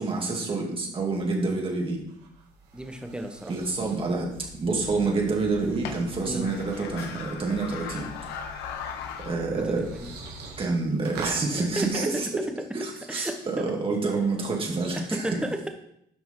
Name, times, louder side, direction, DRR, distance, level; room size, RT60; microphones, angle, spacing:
voice 1, 0.0-2.0 3.5-4.3 4.6-8.1 8.6-8.8 9.2-9.8 10.6-12.3 12.7-15.4, right 3 dB, 30° right, -1 dB, 2.7 m, -28 dB
sound 1, 1.8-11.4, right 5 dB, 75° right, 2.7 m, -46 dB
voice 2, 2.7-3.5 6.3-6.5 9.5-10.1 11.6-11.9 12.1-12.2 13.1-13.4 14.9-15.7, right 1 dB, 5° right, 5 dB, 1.2 m, -33 dB
sound 2, 4.3-10.6, left 7 dB, 90° left, 1.1 m, -39 dB
10.5 x 6.0 x 3.9 m, 0.74 s
cardioid pair, 110°, 17 cm